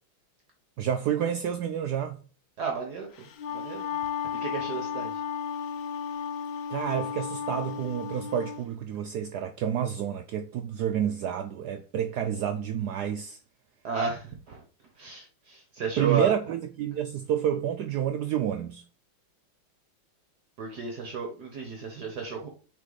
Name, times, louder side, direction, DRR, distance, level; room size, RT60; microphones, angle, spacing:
voice 1, 0.8-2.2 6.7-13.4 16.0-18.8, right 9 dB, 80° right, 0.9 m, -29 dB
voice 2, 2.6-3.8 4.4-5.2 13.8-14.6 14.9-16.3 20.6-22.5, right 5 dB, 60° right, 1.4 m, -33 dB
Wind instrument woodwind instrument, 3.2-8.6, left 8 dB, 65° left, 1.2 m, -34 dB
6.2 x 4.1 x 3.9 m
omnidirectional pair, 2.2 m